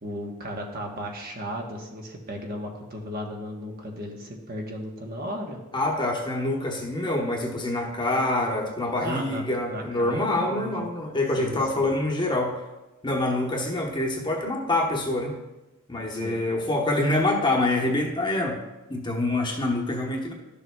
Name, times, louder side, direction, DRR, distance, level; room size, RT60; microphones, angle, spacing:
voice 1, 0.0-5.6 9.0-10.8 11.4-11.9 16.1-16.4, equal, 45° right, 1 dB, 1.1 m, -35 dB
voice 2, 5.7-12.5 13.0-15.3 15.9-18.6 18.9-20.3, left 2 dB, 20° left, 0 dB, 1.0 m, -26 dB
12.0 x 6.9 x 2.3 m, 1.1 s
head